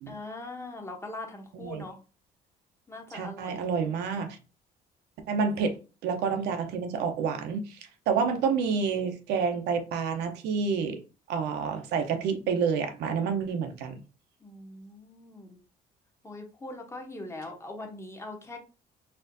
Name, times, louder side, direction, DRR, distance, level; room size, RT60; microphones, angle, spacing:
voice 1, 0.1-2.0 2.9-3.6 14.4-15.6 16.2-18.6, left 2 dB, 15° left, 0.8 m, -41 dB
voice 2, 3.1-4.4 5.3-5.8 6.0-7.8 8.1-11.0 11.3-14.0, right 5 dB, 80° right, 0.7 m, -28 dB
4.3 x 2.5 x 2.6 m
cardioid pair, 110°, 17 cm